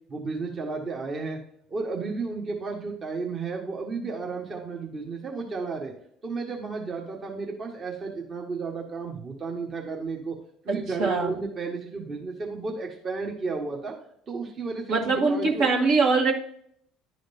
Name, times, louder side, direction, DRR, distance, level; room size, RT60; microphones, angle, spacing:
voice 1, 0.1-1.4 1.7-5.9 6.2-10.3 10.6-13.9 14.3-15.7, right 4 dB, 40° right, 0 dB, 1.4 m, -33 dB
voice 2, 10.7-11.3 14.9-16.3, right 4 dB, 65° right, -2 dB, 1.8 m, -23 dB
11.0 x 5.0 x 2.7 m, 0.66 s
figure-of-eight pair, 60°, 0 cm